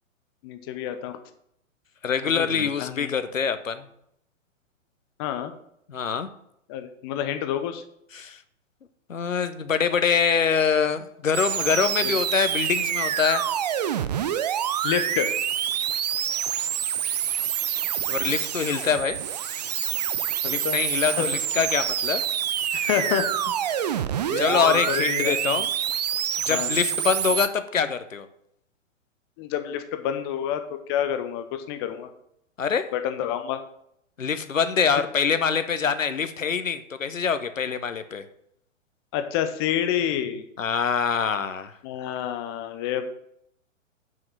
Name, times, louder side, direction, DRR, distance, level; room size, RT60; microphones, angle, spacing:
voice 1, 0.4-1.2 2.2-3.1 5.2-5.5 6.7-7.8 12.0-12.1 14.8-15.3 20.4-20.8 21.1-21.3 22.7-23.8 24.3-25.6 26.5-26.7 29.4-32.1 32.9-33.6 39.1-40.4 41.8-43.0, left 10 dB, 20° left, 8 dB, 0.6 m, -29 dB
voice 2, 2.0-3.9 5.9-6.3 8.1-8.4 9.1-13.4 18.1-19.2 20.5-22.2 24.4-25.7 26.5-28.3 32.6-32.9 34.2-38.2 40.6-41.7, left 6 dB, 75° left, 10 dB, 1.0 m, -24 dB
sound 1, 11.3-27.5, right 9 dB, 35° right, 0.4 m, -27 dB
7.6 x 5.8 x 6.0 m, 0.74 s
figure-of-eight pair, 115°, 40 cm